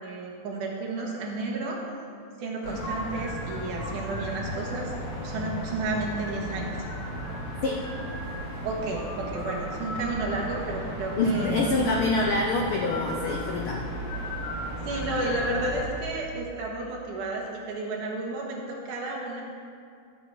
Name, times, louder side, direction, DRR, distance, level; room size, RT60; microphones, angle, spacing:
voice 1, 0.0-1.8 2.4-5.0 5.2-6.8 8.6-11.7 12.7-12.8 14.8-19.4, right 2 dB, 85° right, -2 dB, 2.8 m, -32 dB
sound 1, 2.6-15.9, equal, 40° left, 2.5 m, -35 dB
voice 2, 11.2-13.9, left 2 dB, 85° left, 0 dB, 1.1 m, -26 dB
13.5 x 7.3 x 4.7 m, 2.3 s
omnidirectional pair, 3.5 m